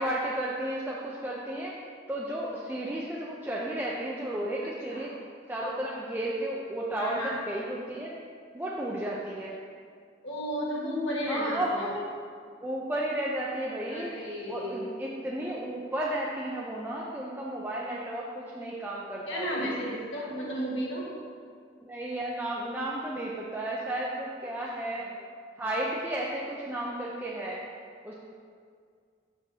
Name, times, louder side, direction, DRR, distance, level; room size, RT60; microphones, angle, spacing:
voice 1, 0.0-1.7 2.1-5.1 5.5-8.1 8.5-9.6 11.3-12.0 12.6-14.1 14.5-19.8 21.8-25.0 25.6-27.6 28.0-28.1, right 1 dB, 10° right, -4 dB, 0.4 m, -33 dB
voice 2, 7.0-7.4 10.2-11.9 13.9-14.9 19.3-21.1 24.9-25.1, equal, 75° left, -5 dB, 1.4 m, -33 dB
6.9 x 5.9 x 2.8 m, 2.1 s
head